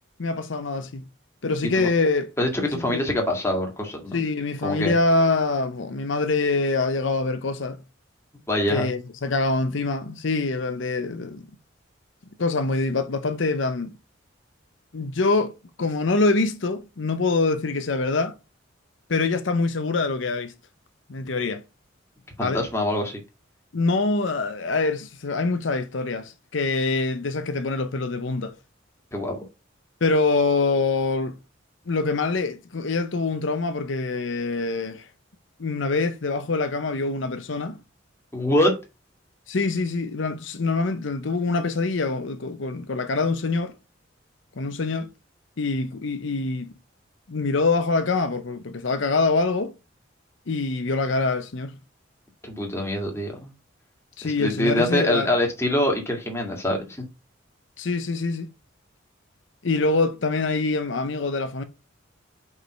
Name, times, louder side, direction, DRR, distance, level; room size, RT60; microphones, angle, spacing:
voice 1, 0.2-1.1 1.4-2.3 2.6-3.0 4.1-7.8 8.7-11.5 12.4-14.0 14.9-15.5 15.8-18.4 19.1-20.5 21.1-21.6 22.4-22.6 23.7-28.5 30.0-31.4 31.9-35.1 35.6-37.8 39.5-43.8 44.6-45.1 45.6-46.7 47.3-49.7 50.5-51.8 54.2-55.3 57.8-58.5 59.6-61.6, left 3 dB, 70° left, 0.7 m, -25 dB
voice 2, 2.4-4.2 4.6-4.9 8.5-8.9 22.4-23.2 29.1-29.4 38.3-38.7 52.4-53.5 54.2-57.0, left 1 dB, 15° left, 1.9 m, -24 dB
5.2 x 4.8 x 5.6 m
head